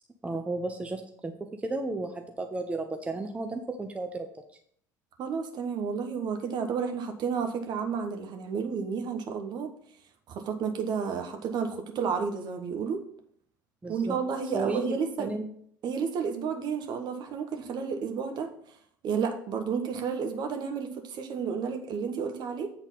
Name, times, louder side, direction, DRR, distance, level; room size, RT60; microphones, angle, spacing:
voice 1, 0.2-4.3 13.8-14.2 14.5-15.5, right 3 dB, 10° right, 5 dB, 0.7 m, -33 dB
voice 2, 5.2-9.7 10.3-13.0 13.9-15.3 15.8-18.5 19.0-22.7, right 6 dB, 45° right, 6 dB, 1.1 m, -31 dB
8.1 x 4.0 x 5.5 m, 0.64 s
figure-of-eight pair, 65°, 10 cm